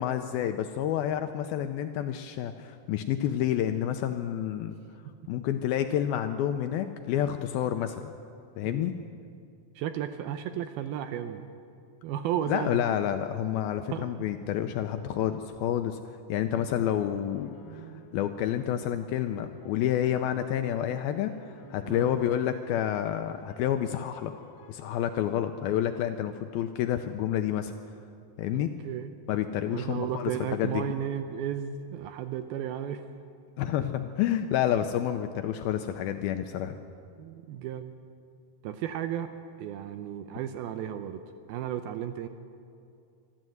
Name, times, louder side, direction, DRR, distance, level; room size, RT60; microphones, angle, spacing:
voice 1, 0.0-4.8 5.3-8.0 8.6-8.9 12.5-16.0 16.3-17.8 18.1-24.3 24.7-27.7 28.4-28.7 29.3-30.8 33.6-36.8, left 10 dB, 80° left, 7 dB, 2.2 m, -29 dB
voice 2, 9.8-11.5 12.0-12.8 13.9-14.2 17.6-18.0 21.9-22.2 28.5-29.1 29.7-33.1 37.2-37.9 38.6-39.3 39.6-42.3, right 10 dB, 80° right, 9 dB, 2.4 m, -34 dB
sound 1, 16.6-20.3 21.0-24.7, left 4 dB, 60° left, 2.5 m, -53 dB
25.0 x 13.5 x 7.8 m, 2.5 s
omnidirectional pair, 4.9 m